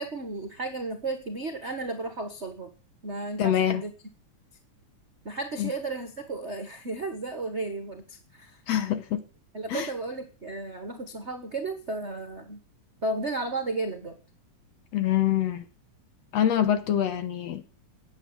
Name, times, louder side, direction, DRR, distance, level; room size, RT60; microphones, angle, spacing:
voice 1, 0.0-2.7 3.0-3.9 5.2-8.6 9.5-12.6 13.0-14.2, right 2 dB, 50° right, 0.8 m, -33 dB
voice 2, 3.4-3.8 5.6-5.7 8.7-9.2 9.7-9.9 14.9-15.6 16.3-17.7, left 10 dB, 65° left, 2.0 m, -25 dB
9.6 x 8.8 x 9.5 m
omnidirectional pair, 3.6 m